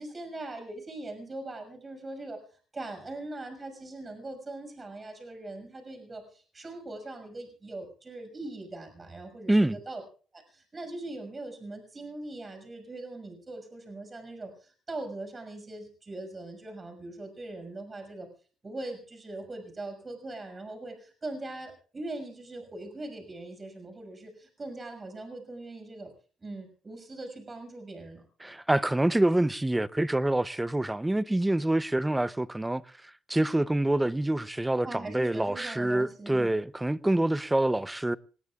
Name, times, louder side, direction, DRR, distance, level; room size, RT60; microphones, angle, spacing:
voice 1, 0.0-10.0 10.3-18.3 18.6-26.1 26.4-28.2 34.8-36.5, right 2 dB, 30° right, 6.1 m, -41 dB
voice 2, 28.4-32.8 33.3-38.2, right 1 dB, 10° right, 0.7 m, -26 dB
26.0 x 19.5 x 2.4 m
cardioid pair, 90°, 0 cm